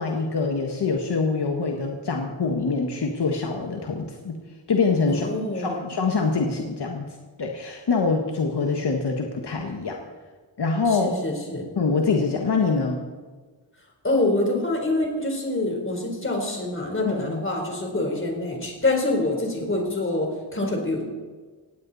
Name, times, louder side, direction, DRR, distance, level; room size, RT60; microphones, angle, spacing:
voice 1, 0.0-4.4 4.7-5.3 5.5-10.0 10.6-11.2 11.8-13.0 17.1-17.4, left 4 dB, 60° left, 2 dB, 1.7 m, -25 dB
voice 2, 5.1-5.8 10.9-11.7 14.0-21.1, left 2 dB, 25° left, 2 dB, 4.0 m, -26 dB
19.0 x 16.5 x 4.2 m, 1.4 s
wide cardioid pair, 135°, 45 cm